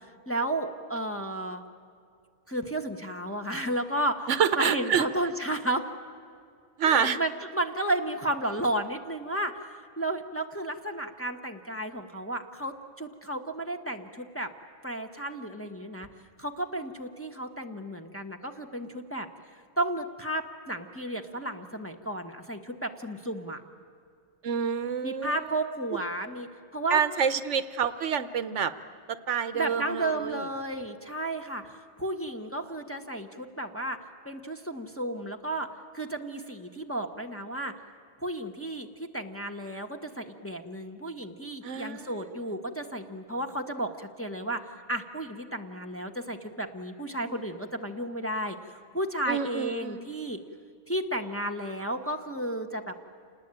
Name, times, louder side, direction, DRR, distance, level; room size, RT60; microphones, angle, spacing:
voice 1, 0.3-1.6 2.5-4.3 4.5-5.8 6.8-9.5 10.0-14.5 14.8-16.1 16.4-19.3 19.8-23.6 25.0-27.0 29.5-34.0 34.2-35.7 35.9-37.7 38.2-50.4 50.9-52.9, right 1 dB, 10° left, 3 dB, 1.1 m, -33 dB
voice 2, 4.3-5.1 6.8-7.2 24.4-25.5 26.9-28.7 29.3-30.4 41.6-42.1 49.3-50.1, right 7 dB, 70° right, 13 dB, 1.1 m, -27 dB
28.0 x 19.5 x 8.9 m, 2.3 s
omnidirectional pair, 1.3 m